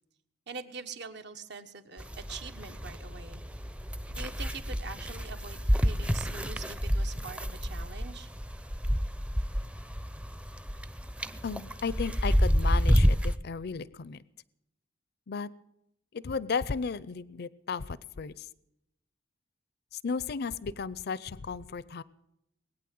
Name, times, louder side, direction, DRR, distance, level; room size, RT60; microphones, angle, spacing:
voice 1, 0.5-3.4 4.1-8.3, right 4 dB, 65° right, 8 dB, 1.3 m, -44 dB
sound 1, 2.0-13.4, equal, 5° right, 0.5 m, -29 dB
voice 2, 11.4-14.2 15.3-15.5 16.1-18.5 20.0-22.0, left 5 dB, 60° left, 19 dB, 0.5 m, -34 dB
21.0 x 9.1 x 7.7 m, 0.82 s
head